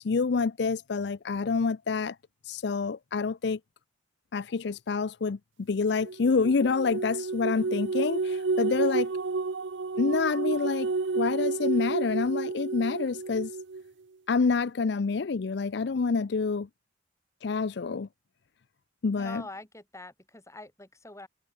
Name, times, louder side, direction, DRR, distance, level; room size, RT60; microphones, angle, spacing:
voice 1, 0.0-2.2 2.4-3.6 4.3-9.1 10.0-13.5 14.3-16.7 17.4-18.1 19.0-19.4, left 4 dB, 60° left, 0.5 m, -27 dB
sound 1, 6.0-13.8, right 3 dB, 80° right, 0.7 m, -30 dB
voice 2, 19.1-21.3, left 2 dB, 15° left, 4.5 m, -44 dB
head